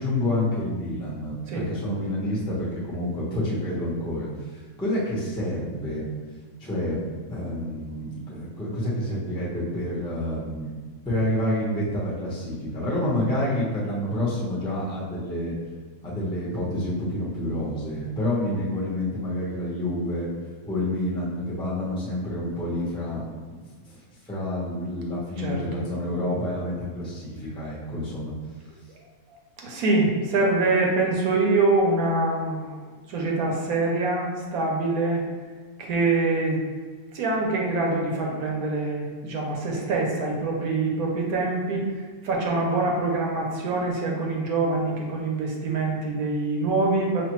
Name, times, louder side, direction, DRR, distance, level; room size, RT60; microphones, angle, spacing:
voice 1, 0.0-6.1 6.6-7.0 7.3-10.7 11.0-15.5 16.0-20.3 20.7-23.3 23.8-24.0 24.2-28.3, left 1 dB, 5° left, -6 dB, 0.6 m, -28 dB
voice 2, 25.4-25.8 29.6-32.8 33.1-35.2 35.8-36.6 37.1-41.9 42.2-47.2, right 3 dB, 75° right, -1 dB, 1.1 m, -24 dB
5.1 x 2.5 x 3.0 m, 1.5 s
omnidirectional pair, 1.6 m